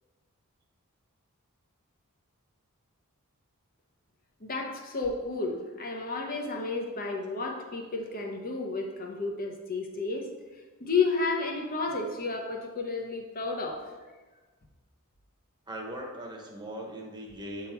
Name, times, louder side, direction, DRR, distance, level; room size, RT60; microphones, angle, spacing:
voice 1, 4.4-10.3 10.8-13.8, left 4 dB, 40° left, 1 dB, 0.9 m, -31 dB
voice 2, 15.7-17.7, right 1 dB, 20° right, 0 dB, 1.1 m, -39 dB
8.5 x 3.7 x 4.4 m, 1.3 s
head